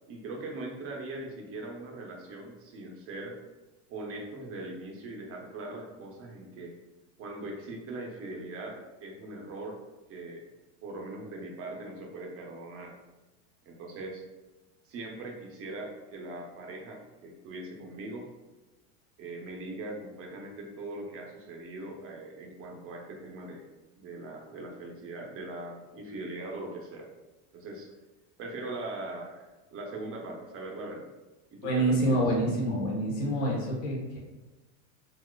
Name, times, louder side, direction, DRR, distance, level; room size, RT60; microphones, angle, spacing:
voice 1, 0.1-3.4 3.9-6.8 7.2-9.8 10.1-10.5 10.8-13.0 13.7-14.2 14.8-18.3 19.2-23.7 24.0-27.1 27.5-28.0 28.4-31.1 31.5-32.2, right 2 dB, 35° right, 1 dB, 0.6 m, -41 dB
voice 2, 31.6-34.2, right 1 dB, 75° left, -3 dB, 1.3 m, -27 dB
4.1 x 2.3 x 2.3 m, 1.1 s
supercardioid pair, 125°, 38 cm